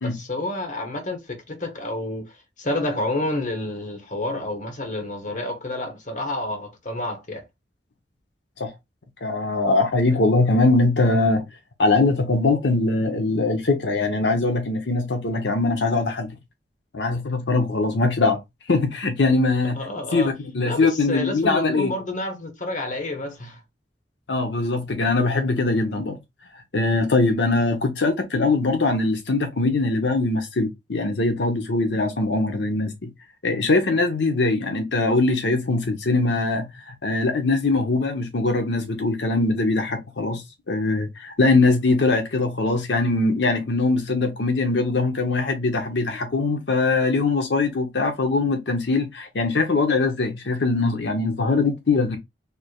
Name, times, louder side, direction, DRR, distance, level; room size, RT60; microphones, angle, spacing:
voice 1, 0.0-7.4 19.8-20.3 20.6-23.6, left 1 dB, 45° left, 1.1 m, -29 dB
voice 2, 9.2-11.4 11.8-16.3 16.9-18.4 18.7-19.8 20.1-21.9 24.3-26.2 26.5-33.1 33.4-52.2, left 3 dB, 80° left, 0.8 m, -22 dB
4.6 x 3.3 x 2.3 m
head